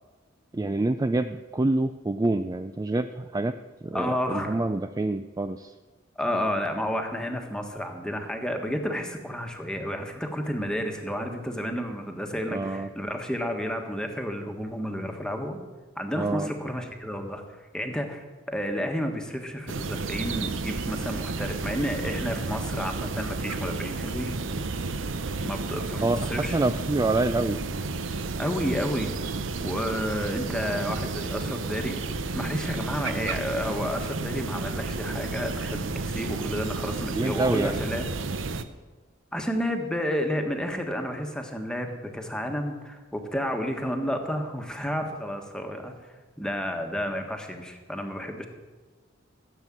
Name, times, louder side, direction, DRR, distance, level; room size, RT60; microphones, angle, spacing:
voice 1, 0.5-3.5 3.8-5.7 12.5-12.9 16.1-16.5 26.0-27.6 37.1-37.8, right 2 dB, 20° right, 9 dB, 0.3 m, -26 dB
voice 2, 3.9-4.6 6.1-15.6 15.9-17.4 17.7-24.4 25.4-26.6 28.4-29.1 29.6-32.0 32.3-38.0 39.3-45.9 46.4-48.5, equal, 5° left, 4 dB, 1.5 m, -31 dB
sound 1, 19.7-38.6, right 3 dB, 75° right, 0.8 m, -32 dB
15.0 x 8.2 x 7.5 m, 1.3 s
head